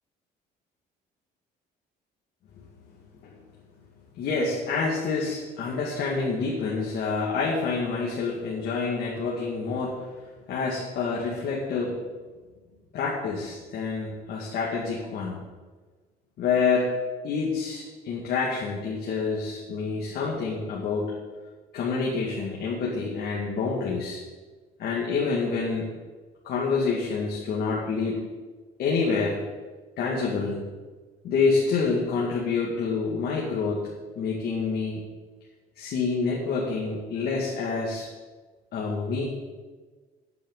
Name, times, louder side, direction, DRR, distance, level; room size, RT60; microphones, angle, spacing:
voice 1, 4.2-10.1 10.5-12.0 12.9-15.4 16.4-17.0 17.2-21.1 21.7-24.2 24.8-25.9 26.4-28.2 28.8-29.4 30.0-30.6 31.2-33.9 34.2-35.0 35.8-38.1 38.7-39.3, left 4 dB, 70° left, -3 dB, 2.2 m, -27 dB
14.5 x 9.5 x 4.1 m, 1.3 s
cardioid pair, 110°, 17 cm